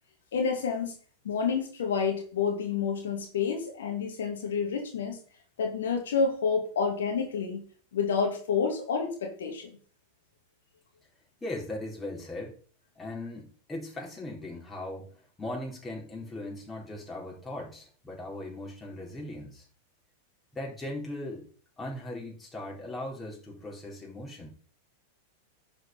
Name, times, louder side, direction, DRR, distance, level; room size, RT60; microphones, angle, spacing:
voice 1, 0.3-0.9 1.2-5.2 5.6-7.6 7.9-9.7, left 5 dB, 70° left, 2 dB, 2.1 m, -29 dB
voice 2, 11.4-12.6 13.0-19.6 20.5-21.4 21.8-24.5, left 1 dB, 15° left, -2 dB, 4.4 m, -39 dB
11.0 x 5.0 x 5.5 m, 0.43 s
figure-of-eight pair, 95°, 0 cm